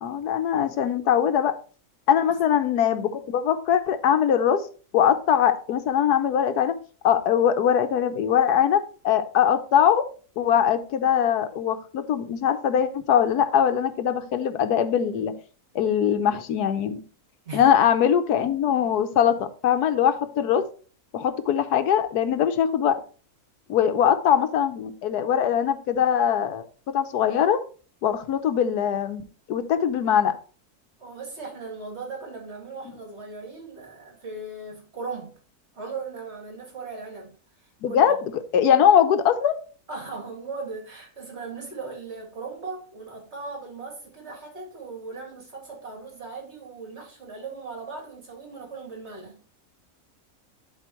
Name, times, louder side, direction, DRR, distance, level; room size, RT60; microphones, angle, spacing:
voice 1, 0.0-1.6 2.1-4.7 4.9-6.8 7.0-10.0 10.4-15.3 15.7-17.0 17.5-20.7 21.1-23.0 23.7-27.6 28.0-30.4 37.8-39.6, left 9 dB, 90° left, 1.3 m, -22 dB
voice 2, 17.4-17.9 31.0-35.4 35.7-37.4 37.6-38.0 39.9-49.4, right 4 dB, 45° right, 2.6 m, -38 dB
12.0 x 4.2 x 3.1 m
omnidirectional pair, 1.6 m